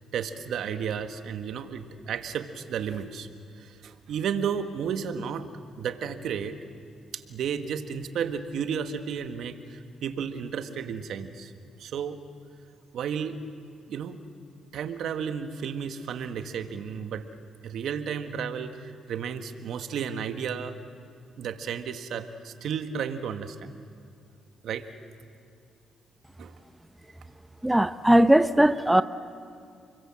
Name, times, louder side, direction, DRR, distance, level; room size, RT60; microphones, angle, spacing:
voice 1, 0.1-3.3 3.5-5.5 5.8-6.6 7.1-11.5 11.8-12.2 12.9-13.4 13.9-14.2 14.7-17.3 17.6-20.8 21.4-23.7 24.6-24.9 26.4-26.5, right 7 dB, 70° right, 1.6 m, -33 dB
voice 2, 27.6-29.0, right 1 dB, 5° right, 0.7 m, -19 dB
29.5 x 22.5 x 7.7 m
cardioid pair, 90°, 0 cm